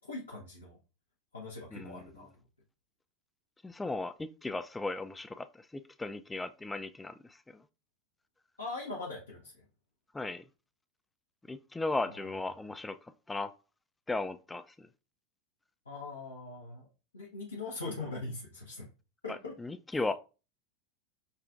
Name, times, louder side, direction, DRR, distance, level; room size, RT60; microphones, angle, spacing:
voice 1, 0.1-0.8 1.3-2.3 8.6-9.6 12.1-12.3 15.9-16.9 17.1-18.9 19.2-19.6 19.9-20.0, left 3 dB, 85° left, 0.8 m, -41 dB
voice 2, 1.7-2.1 3.6-5.5 5.7-7.1 7.5-7.6 10.1-10.4 11.5-13.0 13.3-13.5 14.1-14.9 19.3-20.1, left 2 dB, 10° left, 0.3 m, -36 dB
5.4 x 2.4 x 2.4 m
figure-of-eight pair, 85°, 0 cm